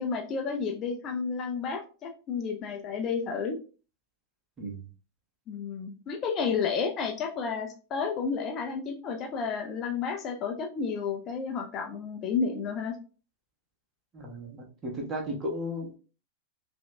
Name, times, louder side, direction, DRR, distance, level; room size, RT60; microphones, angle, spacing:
voice 1, 0.0-3.6 5.5-13.0, left 5 dB, 30° left, 4 dB, 0.5 m, -31 dB
voice 2, 14.1-16.0, equal, 25° right, 0 dB, 1.2 m, -35 dB
5.6 x 2.6 x 2.2 m, 0.37 s
figure-of-eight pair, 90°, 0 cm